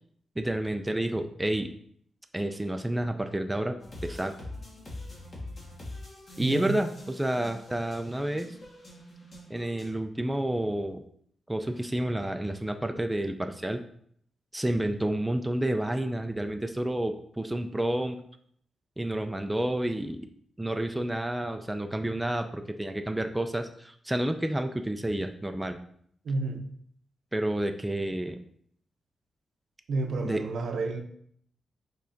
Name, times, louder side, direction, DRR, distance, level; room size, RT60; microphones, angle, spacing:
voice 1, 0.4-1.7 2.3-4.3 6.4-8.6 9.5-11.0 11.5-13.8 14.5-18.2 19.0-20.3 20.6-25.8 27.3-28.4 30.2-30.4, right 1 dB, 10° right, 6 dB, 0.3 m, -30 dB
sound 1, 3.8-9.9, left 1 dB, 40° left, 1.5 m, -44 dB
voice 2, 6.4-6.8 26.2-26.7 29.9-31.0, right 3 dB, 70° right, 5 dB, 0.6 m, -30 dB
5.4 x 3.7 x 2.6 m, 0.65 s
cardioid pair, 100°, 0 cm